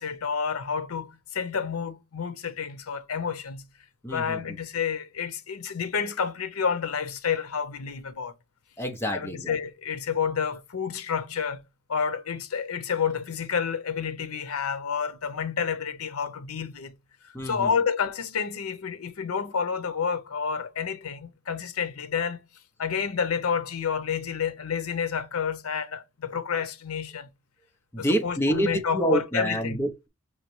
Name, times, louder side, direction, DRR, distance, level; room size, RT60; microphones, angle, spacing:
voice 1, 0.0-3.7 4.1-8.3 9.1-11.6 11.9-16.9 17.4-22.4 22.8-27.3 28.0-29.8, left 6 dB, 90° left, 0.7 m, -29 dB
voice 2, 4.0-4.6 8.8-9.6 17.3-17.7 27.9-30.1, right 1 dB, 10° left, 0.7 m, -28 dB
5.6 x 3.1 x 3.1 m
head